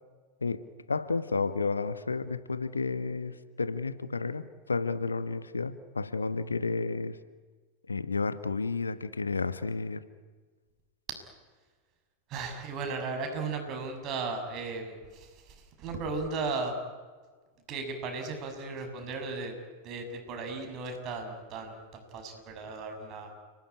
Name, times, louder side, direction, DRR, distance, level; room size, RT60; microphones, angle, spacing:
voice 1, 0.4-7.2 7.9-10.0, left 4 dB, 75° left, 14 dB, 1.3 m, -31 dB
voice 2, 12.3-16.8 17.7-19.5 19.8-23.3, right 4 dB, 35° right, 5 dB, 6.7 m, -36 dB
30.0 x 18.5 x 9.9 m, 1.4 s
figure-of-eight pair, 90°, 0 cm